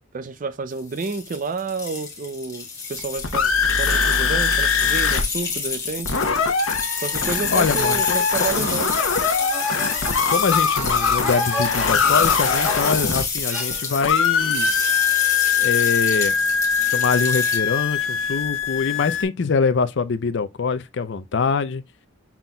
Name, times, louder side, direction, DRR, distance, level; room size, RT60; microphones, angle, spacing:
voice 1, 0.1-6.2 7.0-9.0, right 4 dB, 40° right, 0.4 m, -30 dB
sound 1, 0.8-17.6, left 5 dB, 15° left, 1.5 m, -29 dB
sound 2, 3.0-5.2 5.5-5.6 5.8-13.7 14.0-19.2, left 6 dB, 85° left, 1.0 m, -22 dB
voice 2, 7.5-8.3 10.3-14.7 15.6-16.3 16.9-21.8, left 5 dB, 60° left, 0.5 m, -24 dB
sound 3, 8.6-13.0 13.5-14.3, equal, 5° right, 1.8 m, -33 dB
5.8 x 3.9 x 2.2 m
head